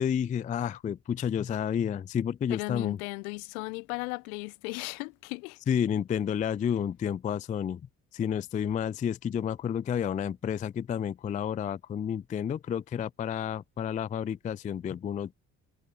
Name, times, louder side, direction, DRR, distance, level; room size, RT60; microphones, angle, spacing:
voice 1, 0.0-3.0 5.7-7.8 8.1-15.3, left 8 dB, 20° left, 0.4 m, -30 dB
voice 2, 2.5-5.6, left 28 dB, 70° left, 1.3 m, -36 dB
figure-of-eight pair, 45°, 44 cm